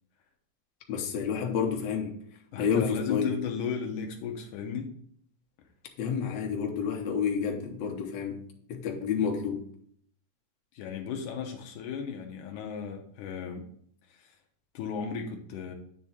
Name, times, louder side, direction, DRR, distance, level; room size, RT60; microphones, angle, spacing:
voice 1, 0.9-2.2 2.6-3.3 6.0-8.4 8.7-9.7, left 6 dB, 65° left, 1.9 m, -29 dB
voice 2, 2.5-4.9 10.7-13.7 14.1-14.4 14.7-15.7, left 6 dB, 85° left, 2.2 m, -35 dB
9.6 x 3.5 x 4.1 m
omnidirectional pair, 3.6 m